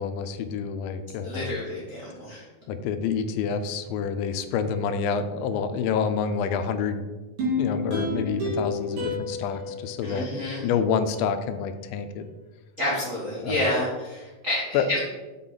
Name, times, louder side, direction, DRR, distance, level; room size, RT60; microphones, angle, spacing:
voice 1, 0.0-1.6 2.7-7.0 7.5-10.3 10.6-12.3 13.4-13.6 14.7-14.9, left 6 dB, 85° left, 9 dB, 2.3 m, -28 dB
voice 2, 1.2-2.4 10.0-10.7 12.8-15.0, left 1 dB, 90° right, -7 dB, 0.7 m, -29 dB
sound 1, 7.4-10.7 11.1-11.2, left 2 dB, 60° right, 3.2 m, -30 dB
6.5 x 5.8 x 3.9 m, 1.2 s
omnidirectional pair, 4.1 m